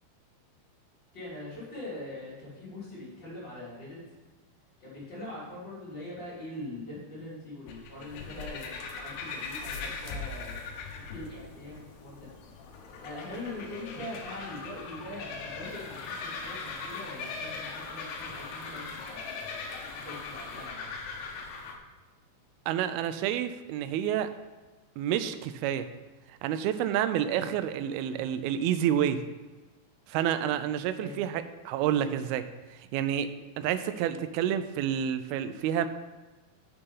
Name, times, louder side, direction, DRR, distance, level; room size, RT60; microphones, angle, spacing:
voice 1, 1.1-4.0 4.8-10.6 10.9-12.3 13.0-19.4 19.9-20.9 30.9-31.2, left 1 dB, 30° left, -8 dB, 3.3 m, -42 dB
sound 1, 7.7-21.7, left 4 dB, 80° left, 2.9 m, -40 dB
sound 2, 15.6-20.7, left 3 dB, 65° left, 3.1 m, -52 dB
voice 2, 22.7-24.3 25.0-25.9 26.4-29.2 30.1-33.3 33.6-35.9, right 10 dB, 80° right, 11 dB, 2.3 m, -29 dB
7.0 x 6.8 x 5.3 m, 1.2 s
omnidirectional pair, 4.6 m